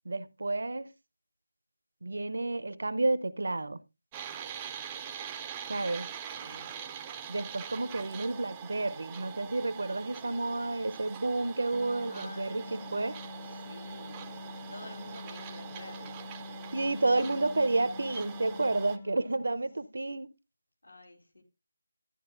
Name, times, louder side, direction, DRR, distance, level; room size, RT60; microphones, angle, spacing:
voice 1, 0.1-0.9 2.0-3.8 5.7-6.1 7.3-13.2 16.7-20.3, right 2 dB, 60° right, 0.6 m, -30 dB
sound 1, 4.1-19.0, right 8 dB, 15° right, 0.5 m, -44 dB
voice 2, 6.2-6.9 12.0-12.9 13.4-14.3 14.7-16.2 20.8-21.4, left 1 dB, 75° left, 3.2 m, -50 dB
sound 2, 11.7-19.8, left 3 dB, 20° left, 0.7 m, -45 dB
12.0 x 9.8 x 2.5 m
figure-of-eight pair, 160°, 0 cm